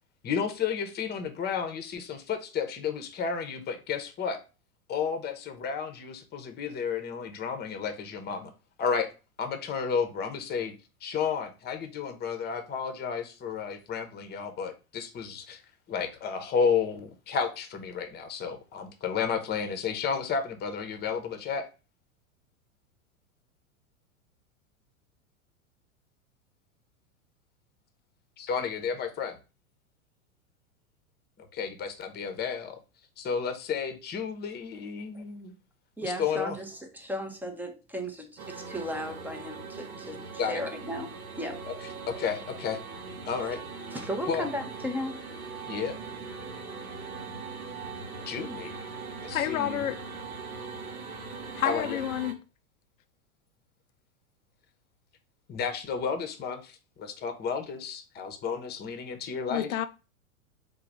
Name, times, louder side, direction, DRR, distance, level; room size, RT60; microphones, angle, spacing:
voice 1, 0.2-4.4 4.9-8.5 8.8-9.1 9.4-10.7 11.0-15.6 15.9-21.7 28.4-29.4 31.5-32.8 33.2-35.5 36.0-36.6 40.4-40.6 42.1-42.8 43.3-43.6 44.3-44.5 45.7-45.9 48.3-48.9 49.2-49.8 51.6-52.0 55.5-59.7, left 6 dB, 25° left, 0.8 m, -32 dB
voice 2, 36.0-41.6 43.9-45.2, equal, 5° right, 0.5 m, -36 dB
sound 1, 38.4-52.3, right 4 dB, 85° right, 1.0 m, -40 dB
voice 3, 49.3-50.0 51.6-52.4 59.5-59.9, left 12 dB, 75° left, 0.5 m, -29 dB
3.9 x 2.3 x 4.4 m
hypercardioid pair, 100°, 41 cm